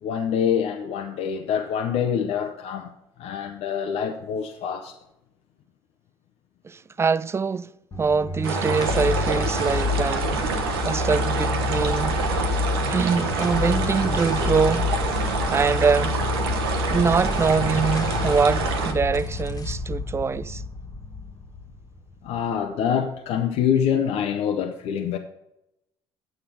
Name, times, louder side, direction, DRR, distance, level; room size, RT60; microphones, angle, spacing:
voice 1, 0.0-2.9 3.2-4.9 22.2-25.2, left 8 dB, 55° left, 0.8 m, -25 dB
voice 2, 6.6-7.7 8.0-12.6 12.9-14.9 15.5-16.2 16.9-20.6, right 5 dB, 20° right, 0.4 m, -24 dB
sound 1, 7.9-22.5, left 4 dB, 30° left, 1.5 m, -28 dB
sound 2, 8.4-18.9, right 4 dB, 80° right, 1.0 m, -27 dB
8.8 x 6.5 x 5.7 m
figure-of-eight pair, 55°, 13 cm